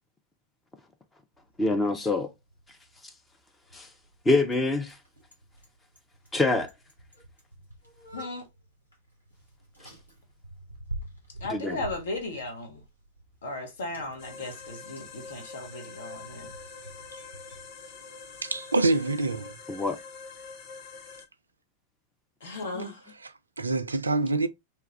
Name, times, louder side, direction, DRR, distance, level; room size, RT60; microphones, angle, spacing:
Bicycle, 1.3-17.6, right 1 dB, 90° left, 1.2 m, -47 dB
voice 1, 1.6-2.3 3.7-3.9 4.3-4.9 6.3-6.7 11.5-11.8 19.7-20.0 22.7-22.9, left 2 dB, 10° left, 0.6 m, -25 dB
voice 2, 8.1-8.5 11.4-12.8 13.4-16.5 22.4-23.1, left 2 dB, 65° left, 1.1 m, -36 dB
sound 1, 14.2-21.3, left 5 dB, 45° left, 0.7 m, -45 dB
voice 3, 18.4-19.5 23.6-24.5, right 3 dB, 75° right, 0.3 m, -25 dB
3.1 x 2.4 x 3.1 m
figure-of-eight pair, 90°, 0 cm